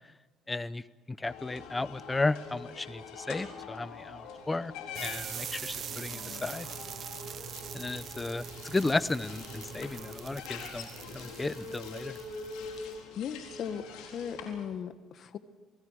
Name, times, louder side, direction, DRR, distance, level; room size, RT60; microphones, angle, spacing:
voice 1, 0.5-6.7 7.7-10.9 11.1-12.2, left 3 dB, 20° left, 17 dB, 0.8 m, -34 dB
sound 1, 1.3-14.7, left 5 dB, 85° left, 4.3 m, -44 dB
sound 2, 4.9-12.8, right 9 dB, 55° right, 0.8 m, -43 dB
voice 2, 12.8-15.4, left 8 dB, 55° left, 11 dB, 1.3 m, -38 dB
28.0 x 18.5 x 6.5 m, 1.2 s
cardioid pair, 95°, 0 cm